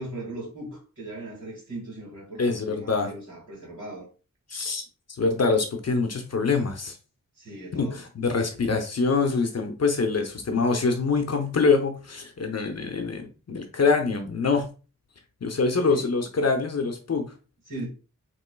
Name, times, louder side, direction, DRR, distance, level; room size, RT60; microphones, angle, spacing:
voice 1, 0.0-4.1 7.4-8.0 15.8-16.1 17.7-17.9, right 2 dB, 55° right, 1.9 m, -38 dB
voice 2, 2.4-3.1 4.5-4.8 5.2-7.0 7.7-14.7 15.4-17.3, left 4 dB, 50° left, 0.7 m, -25 dB
4.3 x 3.0 x 2.2 m
wide cardioid pair, 90°, 34 cm